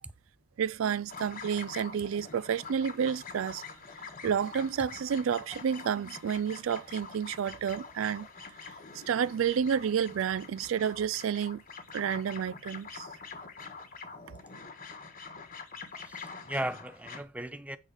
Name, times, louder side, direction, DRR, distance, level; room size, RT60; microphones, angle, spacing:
voice 1, 0.6-3.6 4.2-8.3 9.1-11.6 11.9-13.1, right 7 dB, 80° right, 0.4 m, -30 dB
sound 1, 1.1-17.2, left 5 dB, 45° left, 1.3 m, -46 dB
voice 2, 15.9-17.8, right 1 dB, 5° right, 0.5 m, -37 dB
8.5 x 5.0 x 4.9 m
head